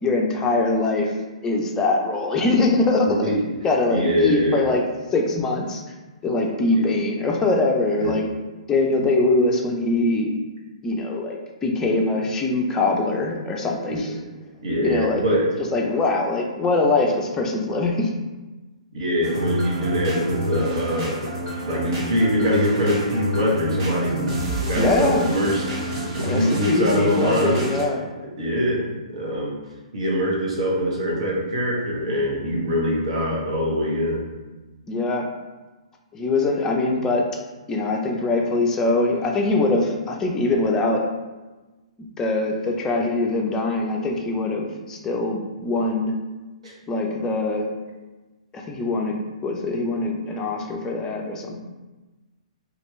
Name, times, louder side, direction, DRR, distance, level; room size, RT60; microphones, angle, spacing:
voice 1, 0.0-1.1 1.4-3.3 3.6-4.8 5.1-5.8 6.2-8.2 8.7-10.3 10.8-14.1 14.8-15.2 15.7-18.1 24.8-25.2 26.2-28.0 34.9-35.3 36.1-37.4 37.7-41.1 42.0-46.2 46.9-47.7 48.5-49.2 49.4-51.6, left 2 dB, 15° left, 0 dB, 0.4 m, -22 dB
voice 2, 3.0-3.4 3.9-4.7 6.7-6.9 8.0-8.1 13.9-14.0 14.6-15.5 18.9-21.2 21.6-25.6 25.9-27.6 28.4-29.5 29.9-34.2 46.6-46.7, equal, 65° right, -3 dB, 1.0 m, -23 dB
sound 1, 19.2-27.8, equal, 45° right, 1.2 m, -28 dB
2.9 x 2.4 x 3.1 m, 1.2 s
figure-of-eight pair, 120°, 4 cm